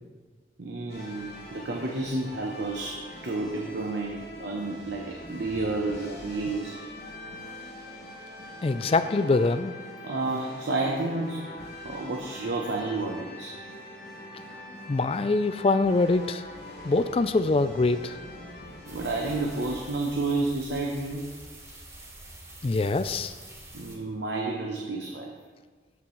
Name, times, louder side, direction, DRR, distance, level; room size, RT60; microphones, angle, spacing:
voice 1, 0.6-6.8 10.0-11.5 11.8-13.6 18.9-21.3 23.7-25.3, right 2 dB, 85° right, 0 dB, 0.9 m, -31 dB
sound 1, 0.9-19.9, left 1 dB, 70° left, 2.9 m, -43 dB
voice 2, 8.6-9.7 14.9-16.4 16.8-18.2 22.6-23.3, left 3 dB, 35° left, 11 dB, 0.3 m, -24 dB
sound 2, 18.9-24.0, right 1 dB, 15° right, 1.1 m, -46 dB
13.5 x 6.0 x 3.1 m, 1.4 s
head